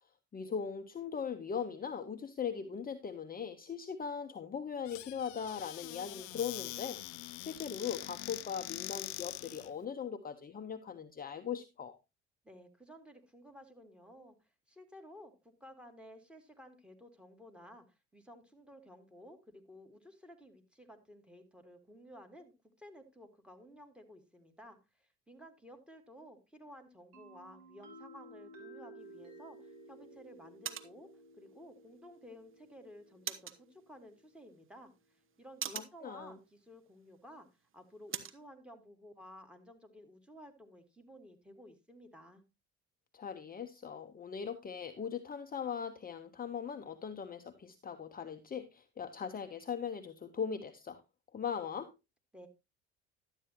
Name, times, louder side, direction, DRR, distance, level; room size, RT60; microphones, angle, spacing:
voice 1, 0.3-12.0 35.7-36.4 43.1-51.0 51.3-51.9, left 7 dB, 25° left, 8 dB, 0.9 m, -40 dB
Squeak / Cupboard open or close, 4.8-9.7, left 20 dB, 65° left, 0.5 m, -44 dB
voice 2, 12.4-22.5 22.8-31.1 31.4-34.9 35.4-37.5 37.7-42.4 52.3-52.5, equal, 5° right, 6 dB, 2.6 m, -54 dB
sound 1, 27.1-34.8, right 1 dB, 65° right, 3.5 m, -56 dB
sound 2, 29.0-38.5, right 9 dB, 35° right, 1.2 m, -48 dB
12.0 x 9.0 x 3.0 m, 0.24 s
hypercardioid pair, 65°, 34 cm